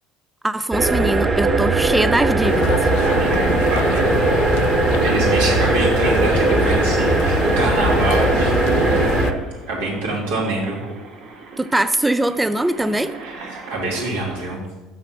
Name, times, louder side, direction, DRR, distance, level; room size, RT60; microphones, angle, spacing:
voice 1, 0.4-2.9 11.6-13.2, right 1 dB, 10° right, 12 dB, 0.3 m, -21 dB
sound 1, 0.7-9.3, right 3 dB, 30° right, 1.2 m, -19 dB
sound 2, 2.2-14.4, right 4 dB, 65° right, 1.7 m, -40 dB
sound 3, 2.4-9.3, left 10 dB, 70° left, 0.4 m, -26 dB
voice 2, 3.0-4.4 5.0-9.2 9.7-10.8 13.2-14.6, right 2 dB, 85° right, -4 dB, 2.6 m, -25 dB
6.0 x 5.8 x 5.9 m, 1.2 s
supercardioid pair, 80°, 0 cm